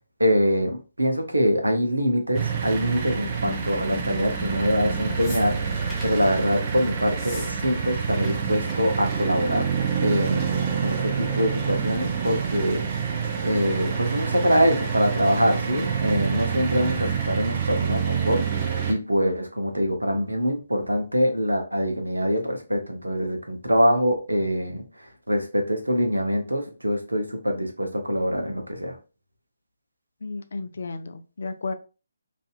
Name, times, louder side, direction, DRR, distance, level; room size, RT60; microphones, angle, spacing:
voice 1, 0.2-9.7 10.0-29.0, equal, 85° right, 4 dB, 0.7 m, -24 dB
sound 1, 2.3-18.9, right 6 dB, 30° right, 0.5 m, -27 dB
sound 2, 5.2-6.2 7.1-7.5 7.8-8.3 8.6-8.7 9.0-9.3 10.3-10.4, left 2 dB, 10° left, 0.7 m, -41 dB
voice 2, 30.2-31.7, left 3 dB, 55° left, 9 dB, 0.3 m, -33 dB
2.6 x 2.5 x 2.3 m, 0.32 s
figure-of-eight pair, 145°, 0 cm